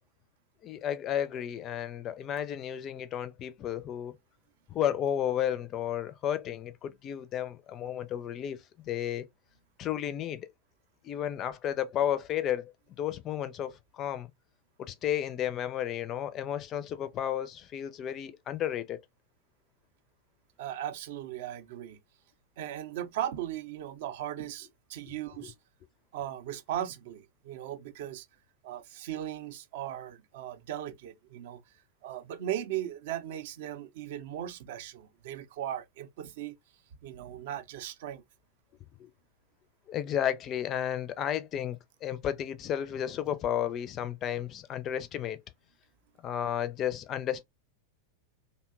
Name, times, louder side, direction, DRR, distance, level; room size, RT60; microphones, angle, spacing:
voice 1, 0.6-4.2 4.7-9.3 9.8-10.5 11.0-14.3 14.8-19.0 25.4-25.5 39.0-39.1 39.9-45.4 46.2-47.4, left 10 dB, 30° left, 0.4 m, -33 dB
voice 2, 20.6-22.0 22.6-25.5 26.1-28.3 28.6-31.6 32.0-36.6 37.0-38.2, right 11 dB, 50° right, 0.5 m, -37 dB
2.7 x 2.2 x 2.3 m
figure-of-eight pair, 90°, 0 cm